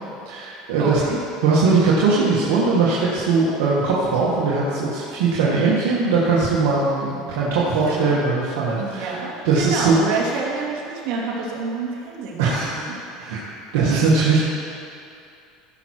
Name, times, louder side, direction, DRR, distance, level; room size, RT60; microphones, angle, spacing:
voice 1, 0.3-1.0 1.4-9.1 9.5-10.0 12.4-12.9 13.2-13.4 13.7-14.4, right 4 dB, 80° right, -6 dB, 1.8 m, -20 dB
voice 2, 0.8-1.2 7.7-8.2 8.8-13.0 13.9-14.3, right 4 dB, 65° right, -3 dB, 2.6 m, -28 dB
15.5 x 6.1 x 4.6 m, 2.6 s
supercardioid pair, 120°, 0 cm